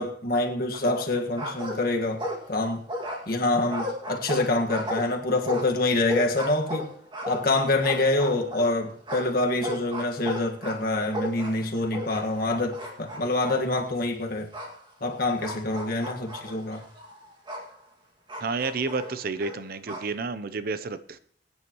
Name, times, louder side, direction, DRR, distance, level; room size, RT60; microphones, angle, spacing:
voice 1, 0.0-2.8 3.3-6.9 7.3-14.5 15.0-16.8, left 2 dB, 55° left, 3 dB, 1.7 m, -26 dB
sound 1, 0.7-1.1 1.4-2.6 2.9-8.7 9.1-12.4 12.7-13.6 14.5-14.7 15.4-17.7 18.3-20.1, equal, 25° right, 2.1 m, -34 dB
voice 2, 18.4-21.2, right 4 dB, 55° right, 13 dB, 0.6 m, -30 dB
21.5 x 9.7 x 3.0 m, 0.65 s
head